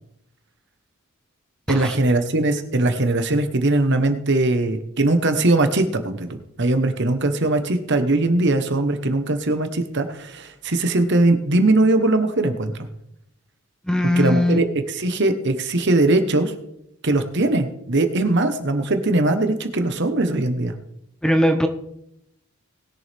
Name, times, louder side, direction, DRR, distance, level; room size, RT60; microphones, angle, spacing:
voice 1, 1.7-6.3 6.6-12.9 14.2-16.5 17.0-20.7, right 2 dB, 50° right, 8 dB, 1.2 m, -20 dB
voice 2, 13.9-14.6 21.2-21.7, equal, 5° left, 6 dB, 0.6 m, -19 dB
20.0 x 7.1 x 3.5 m, 0.79 s
head